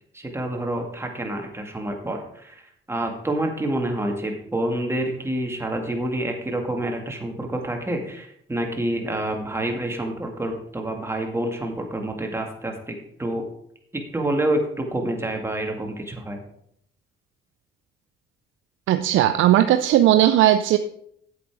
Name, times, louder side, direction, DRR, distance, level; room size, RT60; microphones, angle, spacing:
voice 1, 0.1-13.4 13.9-16.4, right 1 dB, 10° right, 2 dB, 2.1 m, -28 dB
voice 2, 18.9-20.8, right 12 dB, 80° right, 9 dB, 0.5 m, -17 dB
8.5 x 8.1 x 4.8 m, 0.69 s
cardioid pair, 90°, 20 cm